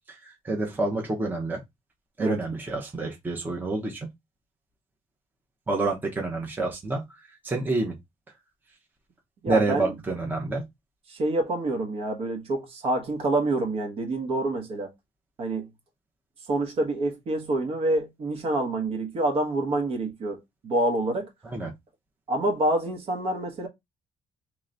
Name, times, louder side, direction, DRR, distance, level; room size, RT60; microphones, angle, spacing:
voice 1, 0.2-1.6 2.2-4.1 5.7-7.0 7.4-8.0 9.5-10.7 21.5-21.7, right 2 dB, 15° right, 0.9 m, -28 dB
voice 2, 9.4-9.9 11.1-14.9 15.4-15.7 16.5-21.3 22.3-23.7, right 2 dB, 50° right, 1.2 m, -27 dB
3.2 x 3.0 x 3.9 m
cardioid pair, 145°, 13 cm